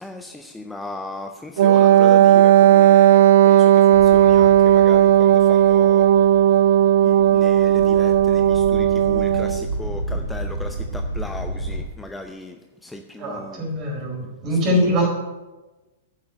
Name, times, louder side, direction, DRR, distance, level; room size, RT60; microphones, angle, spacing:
voice 1, 0.0-6.0 7.0-12.6 12.8-13.7 14.7-14.9, left 2 dB, 5° left, 6 dB, 0.6 m, -36 dB
Wind instrument woodwind instrument, 1.6-9.7, right 10 dB, 50° right, 0.4 m, -14 dB
sound 1, 3.9-11.8, right 1 dB, 90° right, 2.2 m, -32 dB
voice 2, 13.2-15.1, equal, 30° right, -1 dB, 4.6 m, -22 dB
9.8 x 7.3 x 8.5 m, 1.2 s
figure-of-eight pair, 105°, 0 cm